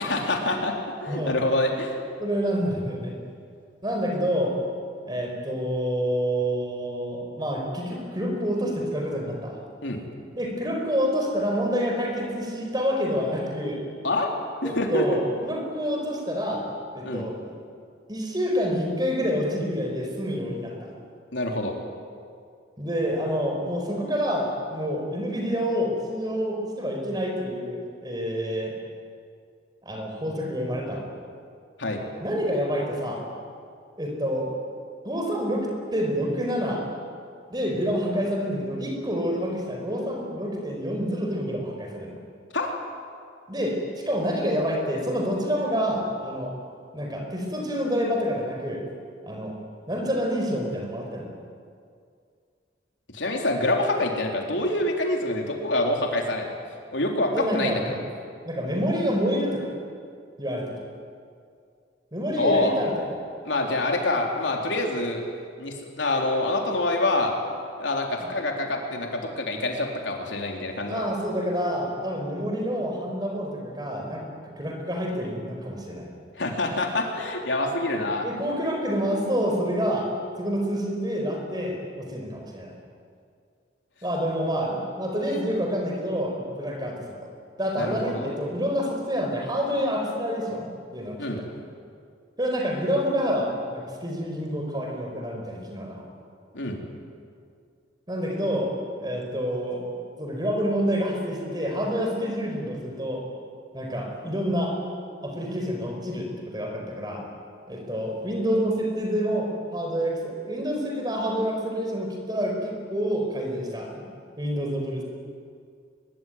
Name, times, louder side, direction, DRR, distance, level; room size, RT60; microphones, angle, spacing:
voice 1, 0.0-2.0 9.8-10.0 14.0-14.3 14.6-15.1 17.0-17.3 21.3-21.7 31.8-32.0 42.5-42.7 53.1-56.5 56.9-57.9 62.4-62.7 63.4-65.2 65.6-67.3 67.8-71.0 76.4-78.3 87.8-88.3 91.2-91.4 96.5-96.8, left 2 dB, 85° left, 1 dB, 4.0 m, -26 dB
voice 2, 2.2-3.2 3.8-4.6 5.0-9.6 10.3-13.8 14.6-16.6 16.9-17.5 18.1-20.9 22.8-28.7 29.8-31.1 32.2-33.2 34.0-34.5 35.0-36.8 37.5-42.1 43.5-46.5 46.9-48.8 49.2-49.6 49.9-51.3 57.3-58.0 58.4-59.7 60.4-60.7 62.1-63.1 70.9-74.3 74.6-76.1 78.0-80.1 80.4-82.7 84.0-87.1 87.6-91.5 92.4-96.1 98.1-98.7 99.0-99.8 100.2-103.2 103.7-104.7 105.2-107.2 107.7-114.1 114.4-115.0, equal, 20° right, 2 dB, 5.1 m, -28 dB
23.0 x 22.5 x 9.5 m, 2.3 s
head